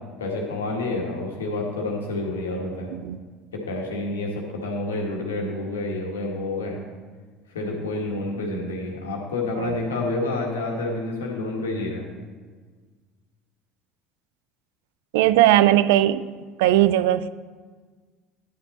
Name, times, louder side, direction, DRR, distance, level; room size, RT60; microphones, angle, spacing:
voice 1, 0.2-2.9 3.5-6.8 7.5-12.0, left 2 dB, 80° left, 0 dB, 1.6 m, -29 dB
voice 2, 15.1-16.3 16.6-17.3, right 13 dB, 70° right, 15 dB, 0.3 m, -18 dB
11.0 x 5.7 x 4.1 m, 1.5 s
figure-of-eight pair, 65°, 0 cm